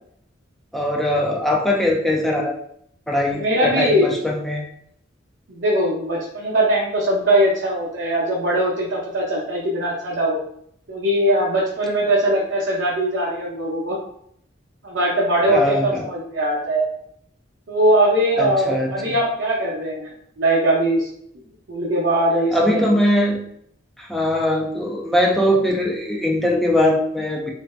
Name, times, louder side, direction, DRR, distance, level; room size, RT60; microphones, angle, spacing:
voice 1, 0.7-2.6 3.1-4.6 15.5-16.1 18.4-19.1 22.5-23.5 24.0-27.5, left 1 dB, ahead, -2 dB, 0.4 m, -21 dB
voice 2, 3.3-4.2 5.5-10.4 10.9-14.0 14.8-16.9 17.7-20.1 20.4-21.1 21.7-22.8, right 1 dB, 85° right, -6 dB, 0.7 m, -20 dB
2.6 x 2.2 x 3.1 m, 0.69 s
head